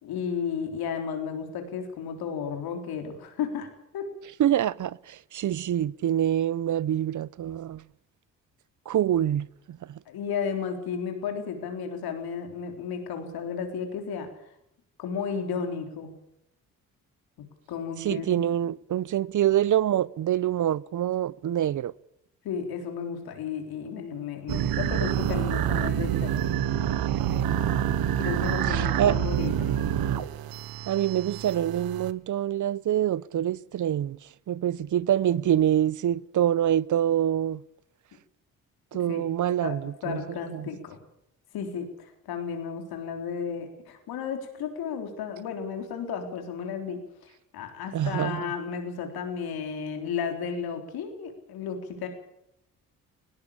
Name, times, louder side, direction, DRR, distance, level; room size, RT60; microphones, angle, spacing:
voice 1, 0.0-4.1 10.1-14.3 15.0-16.1 17.7-18.3 22.4-26.4 28.2-29.8 39.1-39.2 39.6-41.0 41.5-52.1, left 6 dB, 80° left, 3.8 m, -33 dB
voice 2, 4.4-7.8 8.9-10.0 18.0-21.9 28.7-29.2 30.9-34.2 34.5-37.6 38.9-40.7 47.9-48.5, right 11 dB, 55° right, 0.7 m, -26 dB
sound 1, 24.5-32.1, right 10 dB, 75° right, 1.2 m, -27 dB
19.5 x 17.5 x 8.6 m
supercardioid pair, 55°, 37 cm